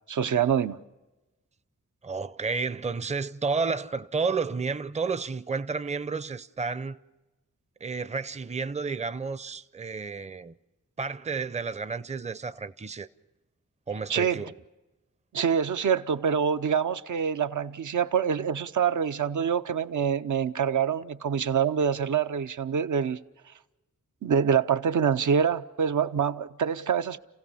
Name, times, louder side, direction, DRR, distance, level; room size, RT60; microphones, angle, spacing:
voice 1, 0.1-0.8 14.1-14.4 15.3-23.2 24.2-27.2, right 7 dB, 70° right, 0.7 m, -25 dB
voice 2, 2.0-7.0 7.8-10.5 11.0-13.1 13.9-14.6, right 4 dB, 20° right, 0.6 m, -31 dB
30.0 x 16.0 x 5.6 m
cardioid pair, 50°, 31 cm